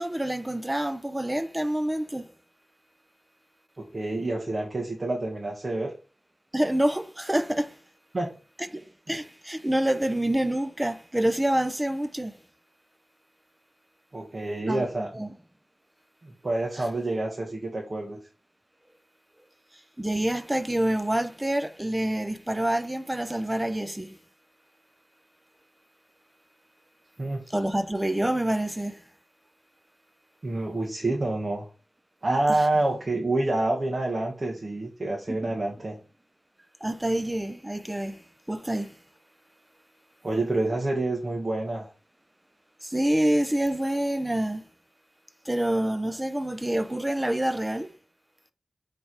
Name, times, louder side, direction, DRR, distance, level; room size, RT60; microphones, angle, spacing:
voice 1, 0.0-2.3 6.5-7.8 8.7-12.4 14.7-14.8 15.1-15.3 20.0-24.2 27.5-29.0 35.3-35.6 36.8-38.2 38.5-39.0 42.8-44.7 45.4-47.9, right 1 dB, 15° right, 0.6 m, -27 dB
voice 2, 3.8-5.9 8.1-8.3 14.1-15.3 16.2-18.2 27.2-27.5 30.4-31.7 32.2-35.9 40.2-41.9, right 2 dB, 45° right, 1.4 m, -28 dB
7.1 x 3.5 x 4.6 m
wide cardioid pair, 90°, 0 cm